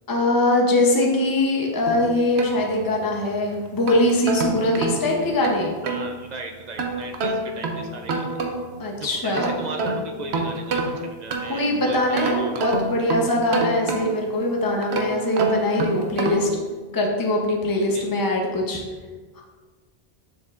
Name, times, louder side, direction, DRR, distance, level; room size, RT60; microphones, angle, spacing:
voice 1, 0.1-5.8 8.8-9.5 11.5-16.5 16.9-18.8 19.4-19.5, left 1 dB, 20° left, 0 dB, 0.8 m, -22 dB
Plucked Violin sequence from a loop, 1.9-3.2 3.7-6.1 6.8-8.8 9.2-11.7 12.2-14.3 14.8-16.6, right 2 dB, 75° right, 1.0 m, -27 dB
voice 2, 5.8-8.4 9.0-12.6 17.9-18.0, right 3 dB, 50° right, 4 dB, 0.6 m, -36 dB
7.0 x 6.6 x 2.5 m, 1.4 s
omnidirectional pair, 1.1 m